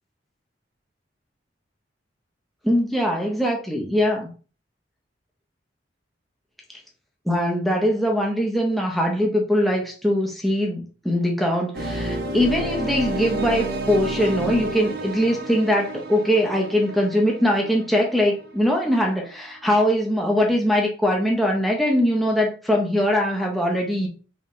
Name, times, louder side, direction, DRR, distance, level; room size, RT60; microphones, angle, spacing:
voice 1, 2.6-4.3 7.3-24.1, equal, ahead, -1 dB, 0.6 m, -22 dB
sound 1, 11.7-18.6, right 2 dB, 60° right, 0.7 m, -30 dB
3.6 x 2.8 x 3.7 m, 0.37 s
head